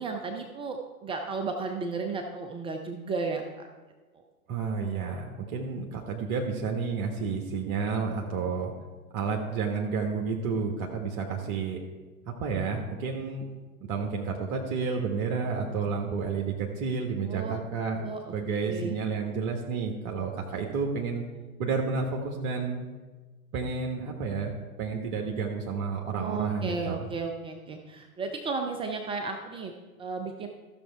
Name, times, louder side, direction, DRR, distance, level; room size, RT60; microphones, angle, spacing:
voice 1, 0.0-3.4 17.3-17.5 18.0-18.2 18.6-19.0 26.1-29.7 30.0-30.5, right 4 dB, 15° right, 4 dB, 0.4 m, -33 dB
voice 2, 4.5-8.7 9.1-11.8 12.2-13.4 13.8-18.0 18.3-21.2 21.6-22.8 23.5-24.5 24.8-27.1, right 5 dB, 40° right, 0 dB, 1.3 m, -31 dB
14.0 x 6.5 x 4.6 m, 1.3 s
figure-of-eight pair, 95°, 43 cm